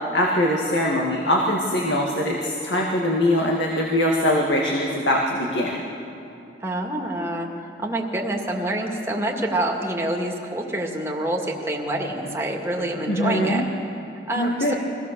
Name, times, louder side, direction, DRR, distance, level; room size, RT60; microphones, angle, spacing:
voice 1, 0.1-5.7 13.1-13.6 14.4-14.7, left 1 dB, 90° left, -1 dB, 1.9 m, -22 dB
voice 2, 6.6-7.5 7.8-13.6 14.3-14.7, right 1 dB, 15° right, 0 dB, 1.9 m, -26 dB
23.5 x 16.5 x 6.8 m, 2.7 s
head